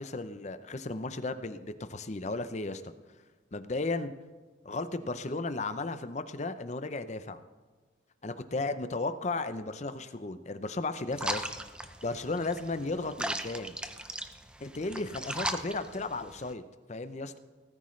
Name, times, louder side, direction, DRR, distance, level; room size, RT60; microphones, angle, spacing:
voice 1, 0.0-2.9 3.5-4.1 4.6-7.4 8.2-11.5 12.0-13.7 14.6-16.6 16.9-17.4, left 3 dB, 35° left, 11 dB, 0.6 m, -34 dB
sound 1, 11.1-16.5, right 1 dB, 5° right, 0.5 m, -38 dB
18.5 x 13.5 x 3.2 m, 1.3 s
head